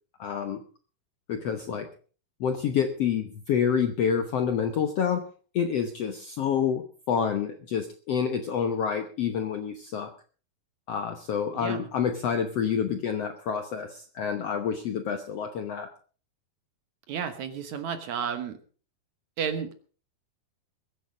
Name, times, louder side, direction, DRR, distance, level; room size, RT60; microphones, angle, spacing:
voice 1, 0.2-0.6 1.3-1.9 2.4-5.2 5.5-10.1 10.9-15.9, left 7 dB, 65° left, 7 dB, 1.6 m, -28 dB
voice 2, 11.5-11.9 17.1-18.6 19.4-19.7, right 7 dB, 60° right, 9 dB, 2.2 m, -32 dB
21.5 x 9.2 x 5.1 m, 0.40 s
omnidirectional pair, 4.2 m